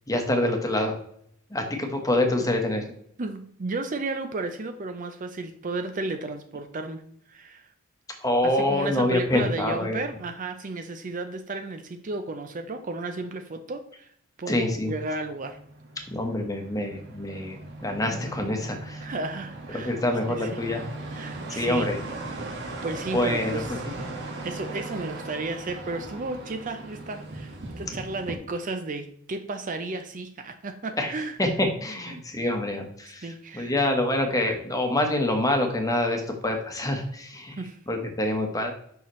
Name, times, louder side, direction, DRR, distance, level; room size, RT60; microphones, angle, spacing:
voice 1, 0.1-1.0 1.5-2.8 8.2-10.0 14.4-14.9 16.1-19.1 19.8-20.8 21.5-22.0 23.1-23.8 31.0-31.1 31.4-37.6 37.9-38.7, left 1 dB, 15° left, 3 dB, 1.1 m, -26 dB
voice 2, 3.2-7.0 7.3-7.7 8.4-14.1 14.4-15.6 19.0-20.0 20.3-20.6 21.1-21.9 22.8-23.8 24.4-31.4 32.1-32.2 33.2-33.7 37.6-37.8, right 3 dB, 35° right, 7 dB, 0.5 m, -33 dB
sound 1, 14.9-28.4, right 2 dB, 60° right, 1.5 m, -38 dB
6.9 x 5.7 x 3.1 m, 0.67 s
head